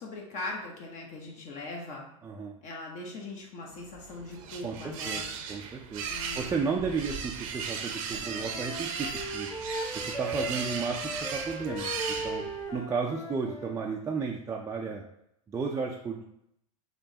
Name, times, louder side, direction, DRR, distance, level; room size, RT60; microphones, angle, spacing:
voice 1, 0.0-2.0 2.6-5.3 6.1-6.9, left 2 dB, 45° left, -1 dB, 0.8 m, -40 dB
voice 2, 2.2-2.5 4.6-6.0 6.3-9.5 9.9-12.4 12.7-15.0 15.5-16.2, right 5 dB, 15° right, -1 dB, 0.4 m, -33 dB
sound 1, 3.9-12.8, right 6 dB, 70° right, 0.6 m, -37 dB
Wind instrument woodwind instrument, 8.2-13.8, right 1 dB, 15° left, 0.9 m, -37 dB
4.5 x 3.1 x 2.7 m, 0.78 s
hypercardioid pair, 110°, 18 cm